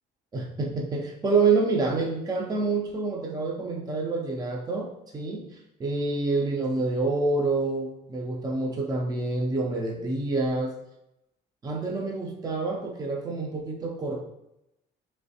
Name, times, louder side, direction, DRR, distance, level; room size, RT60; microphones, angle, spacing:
voice 1, 0.3-10.8 11.6-14.2, right 3 dB, 25° right, 0 dB, 0.5 m, -27 dB
3.2 x 3.1 x 2.7 m, 0.86 s
cardioid pair, 110°, 17 cm